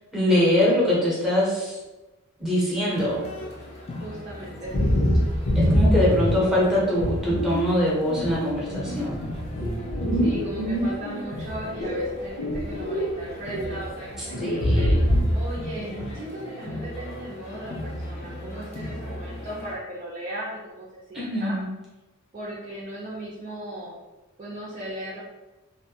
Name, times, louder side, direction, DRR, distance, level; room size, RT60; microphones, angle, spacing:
voice 1, 0.1-1.8 2.4-3.2 5.5-9.2 14.4-14.9 21.1-21.7, left 1 dB, ahead, -7 dB, 0.8 m, -23 dB
sound 1, 3.0-19.8, left 1 dB, 30° left, 0.4 m, -38 dB
voice 2, 4.0-4.9 10.1-14.9 15.3-21.6 22.3-23.9 24.4-25.2, right 1 dB, 35° right, -8 dB, 0.5 m, -37 dB
sound 2, 4.7-6.5 7.0-7.6 8.0-11.2 11.6-13.1 13.4-13.7 14.3-15.5 15.8-16.1, equal, 60° left, 0.7 m, -24 dB
2.6 x 2.2 x 2.7 m, 1.1 s
head